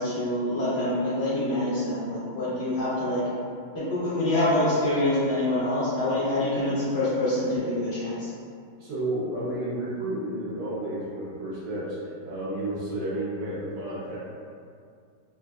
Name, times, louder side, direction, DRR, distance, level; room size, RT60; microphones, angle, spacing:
voice 1, 0.0-3.3 3.7-8.3, left 1 dB, 65° left, -10 dB, 1.1 m, -26 dB
voice 2, 8.8-14.2, right 1 dB, 70° right, -8 dB, 1.4 m, -31 dB
3.9 x 2.3 x 2.2 m, 2.3 s
omnidirectional pair, 2.2 m